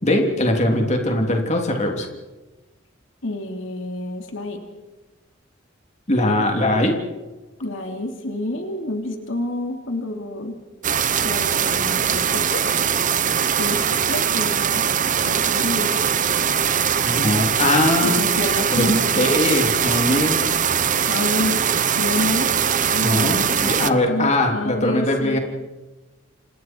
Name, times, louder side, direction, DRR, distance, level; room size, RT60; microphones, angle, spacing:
voice 1, 0.0-2.1 6.1-7.0 17.0-18.2 18.7-20.4 23.0-25.4, left 1 dB, 35° left, 2 dB, 3.4 m, -21 dB
voice 2, 3.2-4.6 7.6-10.5 11.2-12.8 13.4-14.8 15.3-16.0 18.0-19.4 21.1-21.6 22.0-25.4, left 1 dB, 70° left, 4 dB, 2.9 m, -28 dB
sound 1, 10.8-23.9, right 8 dB, 40° right, 0.9 m, -21 dB
28.5 x 28.0 x 4.7 m, 1.1 s
head